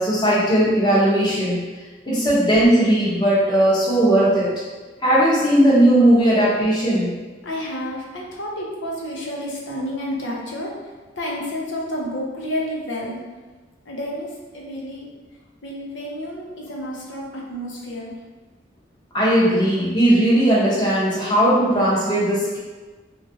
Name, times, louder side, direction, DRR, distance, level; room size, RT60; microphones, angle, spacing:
voice 1, 0.0-1.6 2.0-4.5 5.0-7.1 19.1-22.6, right 1 dB, 25° left, -8 dB, 0.8 m, -17 dB
voice 2, 7.4-10.7 11.1-13.2 13.9-15.1 15.6-18.2, equal, 75° left, -2 dB, 0.6 m, -30 dB
3.1 x 2.4 x 2.7 m, 1.3 s
head